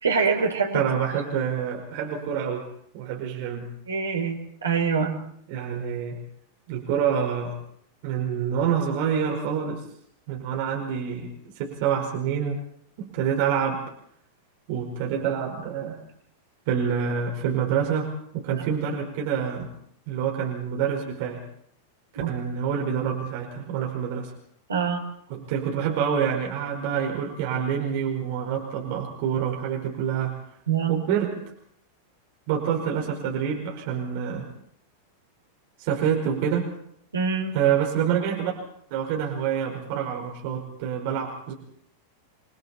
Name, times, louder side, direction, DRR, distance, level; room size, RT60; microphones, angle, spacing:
voice 1, 0.0-0.8 3.9-5.2 22.2-22.3 24.7-25.0 30.7-31.0 37.1-37.6, right 5 dB, 70° right, 2 dB, 4.2 m, -24 dB
voice 2, 0.7-2.7 2.9-3.7 5.5-6.2 6.7-7.6 8.0-9.8 10.3-12.6 13.0-13.8 14.7-16.0 16.7-19.7 20.1-21.4 22.1-24.3 25.3-30.4 30.9-31.4 32.5-34.5 35.8-36.7 37.5-38.5 38.9-41.5, right 8 dB, 50° right, 1 dB, 5.1 m, -27 dB
29.5 x 24.0 x 4.4 m, 0.69 s
figure-of-eight pair, 90°, 0 cm